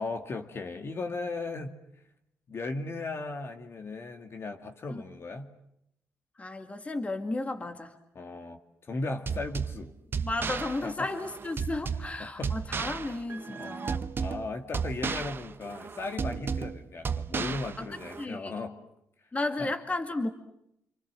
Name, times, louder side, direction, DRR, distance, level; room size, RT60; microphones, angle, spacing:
voice 1, 0.0-1.7 2.5-5.5 8.1-9.9 10.8-11.1 12.2-12.6 13.5-13.8 14.2-18.8 19.6-19.7, left 3 dB, 45° left, 5 dB, 2.4 m, -36 dB
voice 2, 6.4-7.9 10.2-14.1 17.8-17.9 18.2-18.6 19.3-20.3, left 2 dB, 25° left, 6 dB, 2.2 m, -33 dB
sound 1, 9.3-18.2, right 6 dB, 40° right, 1.0 m, -34 dB
27.5 x 25.5 x 7.7 m, 0.79 s
cardioid pair, 95°, 6 cm